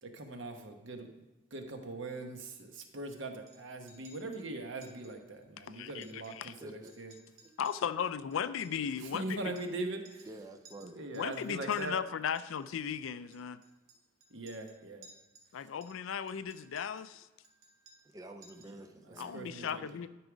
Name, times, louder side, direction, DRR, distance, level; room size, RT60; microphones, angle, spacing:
voice 1, 0.0-1.1 1.5-7.1 9.0-10.3 10.8-12.0 14.3-15.1 18.6-18.8 19.2-19.8, right 2 dB, 60° right, 1.0 m, -41 dB
Chink clink, 2.5-3.1 3.5-3.6 3.9-4.4 4.8-5.1 5.4-5.5 5.9-6.6 6.9-9.8 10.1-10.4 10.7-11.8 12.4-12.6 13.3-15.5 15.8-17.1 17.4-18.2 18.4-18.8, right 2 dB, 75° right, 1.5 m, -60 dB
voice 2, 5.7-6.5 7.6-9.4 11.1-13.6 15.5-17.3 19.2-20.1, left 7 dB, 65° left, 0.4 m, -36 dB
voice 3, 6.6-6.9 7.4-7.6 10.2-11.0 18.1-20.1, right 1 dB, 15° right, 0.4 m, -50 dB
12.0 x 4.8 x 5.1 m
head